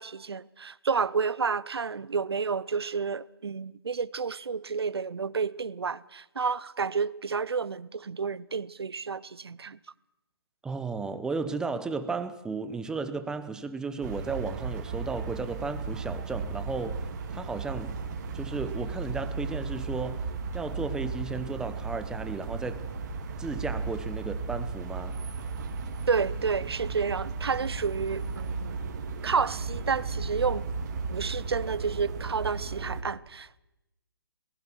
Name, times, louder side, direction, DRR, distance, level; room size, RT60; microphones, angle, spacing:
voice 1, 0.0-9.8 26.1-28.8 29.2-30.7 31.1-33.6, right 5 dB, 80° right, 0.8 m, -30 dB
voice 2, 10.6-17.1 17.3-17.9 18.3-22.8 23.4-25.2, right 4 dB, 5° right, 0.9 m, -34 dB
sound 1, 14.0-33.0, right 4 dB, 45° right, 2.9 m, -35 dB
30.0 x 20.0 x 4.6 m
hypercardioid pair, 145°, 13 cm